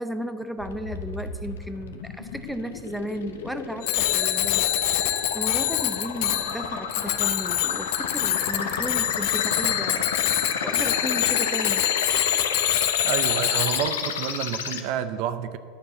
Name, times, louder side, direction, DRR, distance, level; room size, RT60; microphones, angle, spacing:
voice 1, 0.0-4.7 4.9-10.1 10.4-11.8, equal, ahead, 8 dB, 0.7 m, -34 dB
sound 1, 0.6-14.8, left 6 dB, 85° left, 0.8 m, -31 dB
Bicycle bell, 3.8-13.8, left 14 dB, 65° left, 0.5 m, -25 dB
voice 2, 13.0-15.6, right 9 dB, 60° right, 12 dB, 0.6 m, -29 dB
11.0 x 4.7 x 7.0 m, 2.1 s
hypercardioid pair, 95°, 0 cm